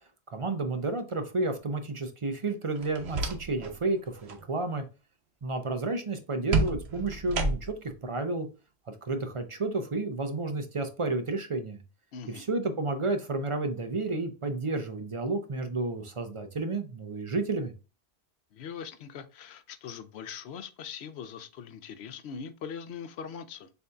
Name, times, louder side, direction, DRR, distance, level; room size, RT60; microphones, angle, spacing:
voice 1, 0.3-4.8 5.4-8.5 9.0-11.8 12.3-17.7, right 3 dB, 40° right, 0.5 m, -31 dB
sound 1, 2.8-3.8 4.1-4.4 6.5-7.9, right 3 dB, 85° right, 1.0 m, -30 dB
voice 2, 12.1-12.5 18.5-23.7, left 7 dB, 85° left, 0.9 m, -41 dB
6.8 x 2.7 x 2.3 m
omnidirectional pair, 1.1 m